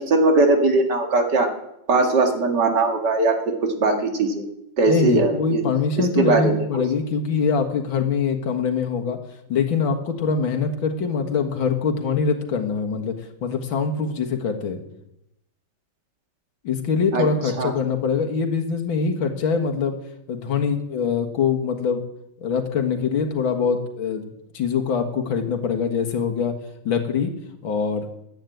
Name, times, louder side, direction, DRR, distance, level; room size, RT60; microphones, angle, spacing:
voice 1, 0.0-1.5 1.9-4.4 4.8-5.7 6.0-6.7 17.1-17.3 17.6-17.7, right 3 dB, 60° right, 4 dB, 2.5 m, -20 dB
voice 2, 4.9-9.2 9.5-13.1 13.4-14.8 16.6-20.0 20.3-22.0 22.4-24.3 24.5-26.5 26.9-27.3 27.6-28.1, left 5 dB, 75° left, 3 dB, 2.4 m, -23 dB
11.5 x 10.0 x 9.1 m, 0.83 s
omnidirectional pair, 2.2 m